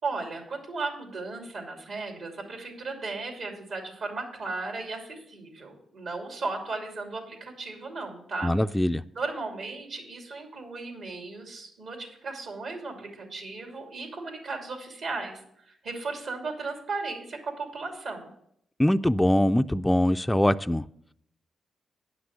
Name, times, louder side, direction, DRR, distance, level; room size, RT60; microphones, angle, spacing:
voice 1, 0.0-8.5 9.1-18.3, right 3 dB, 70° right, 2 dB, 2.8 m, -36 dB
voice 2, 8.4-9.0 18.8-20.8, left 1 dB, 10° left, 9 dB, 0.3 m, -22 dB
9.7 x 6.1 x 7.2 m, 0.71 s
cardioid pair, 70°, 0 cm